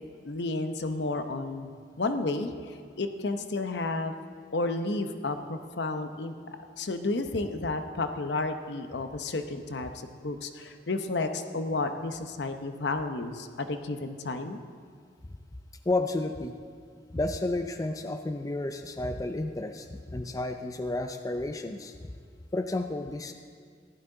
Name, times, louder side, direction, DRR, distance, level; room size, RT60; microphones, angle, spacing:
voice 1, 0.2-1.7 2.0-4.1 4.5-6.3 6.8-14.6, left 2 dB, 75° left, 7 dB, 0.8 m, -32 dB
voice 2, 15.9-16.5 17.1-21.9 22.5-23.3, left 2 dB, 20° left, 6 dB, 0.4 m, -31 dB
15.5 x 11.5 x 3.8 m, 2.1 s
head